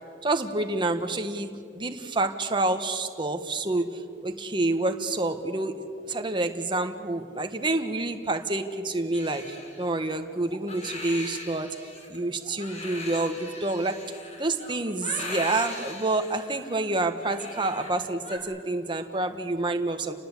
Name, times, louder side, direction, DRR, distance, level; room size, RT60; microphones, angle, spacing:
voice 1, 0.2-5.8 6.1-11.7 12.1-14.0 14.4-20.1, right 2 dB, 25° right, 6 dB, 1.5 m, -28 dB
Crying sobbing, 9.1-18.4, left 2 dB, 40° left, 4.4 m, -40 dB
29.5 x 19.5 x 8.3 m, 2.4 s
head